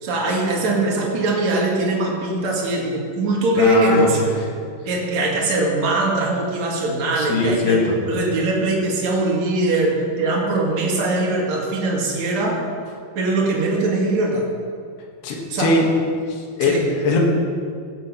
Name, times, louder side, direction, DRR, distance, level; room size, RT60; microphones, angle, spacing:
voice 1, 0.0-4.3 4.8-12.6 13.2-14.4 15.5-15.8 16.6-16.9, right 2 dB, 50° right, -2 dB, 3.1 m, -21 dB
voice 2, 3.6-4.1 7.2-8.0 15.2-15.9 16.4-17.2, left 3 dB, 85° left, -1 dB, 3.7 m, -20 dB
17.0 x 7.9 x 5.5 m, 2.2 s
omnidirectional pair, 4.6 m